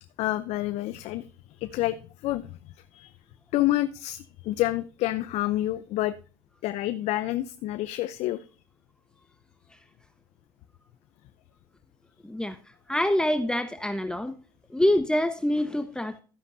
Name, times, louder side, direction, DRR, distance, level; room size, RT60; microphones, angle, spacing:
voice 1, 0.2-1.3 1.6-2.5 2.9-3.2 3.5-6.1 6.6-8.5, left 15 dB, 65° left, 12 dB, 0.6 m, -28 dB
voice 2, 12.2-12.6 12.9-14.3 14.7-16.2, left 1 dB, 5° left, 8 dB, 1.1 m, -25 dB
12.5 x 9.6 x 2.7 m, 0.37 s
supercardioid pair, 80°, 12 cm